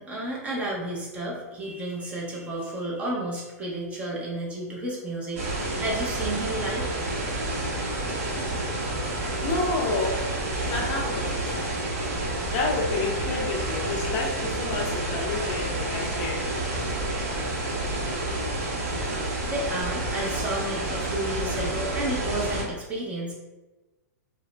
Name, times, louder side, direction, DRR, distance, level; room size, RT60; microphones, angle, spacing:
voice 1, 0.0-6.9 19.4-23.3, right 1 dB, 15° right, -5 dB, 0.6 m, -32 dB
sound 1, 5.4-22.6, right 1 dB, 55° right, 0.8 m, -29 dB
voice 2, 9.4-10.4 10.7-11.4 12.5-16.5, left 3 dB, 40° left, 0 dB, 0.4 m, -29 dB
2.4 x 2.0 x 3.1 m, 1.1 s
hypercardioid pair, 140°, 9 cm